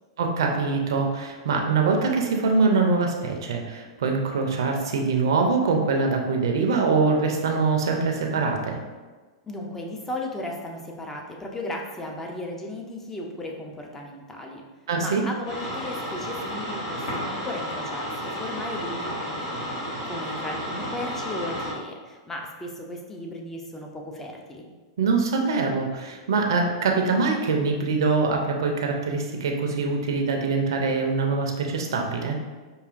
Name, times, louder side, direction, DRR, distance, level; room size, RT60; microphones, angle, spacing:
voice 1, 0.2-8.8 14.9-15.2 25.0-32.4, right 4 dB, 70° right, 2 dB, 0.5 m, -23 dB
voice 2, 9.4-14.6 15.0-24.7, left 1 dB, 15° left, 1 dB, 0.6 m, -36 dB
sound 1, 15.5-21.7, equal, 65° left, 1.4 m, -32 dB
4.7 x 2.7 x 2.5 m, 1.3 s
hypercardioid pair, 105°, 2 cm